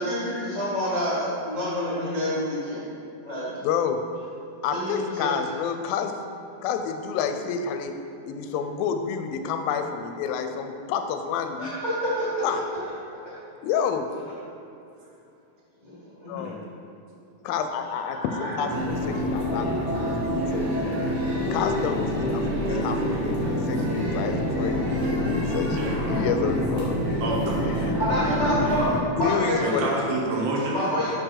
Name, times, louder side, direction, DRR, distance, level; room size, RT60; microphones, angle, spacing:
voice 1, 0.0-2.8 3.2-3.5 4.7-5.3 11.6-12.6 15.8-16.5 18.1-18.5 19.9-20.0 28.0-29.5 30.7-31.1, equal, 55° left, -10 dB, 0.4 m, -28 dB
voice 2, 3.6-4.0 4.6-6.1 6.6-7.9 8.3-11.7 12.4-12.6 13.6-14.1 16.3-16.6 17.4-20.9 21.5-23.4 23.7-26.9 27.8-27.9 29.2-29.9, left 7 dB, 85° left, 7 dB, 2.4 m, -29 dB
sound 1, 18.7-29.0, equal, 60° right, 1.3 m, -26 dB
voice 3, 25.8-26.2 27.2-27.6 29.6-30.8, right 2 dB, 75° right, -3 dB, 2.9 m, -28 dB
7.8 x 4.6 x 5.8 m, 2.6 s
omnidirectional pair, 4.1 m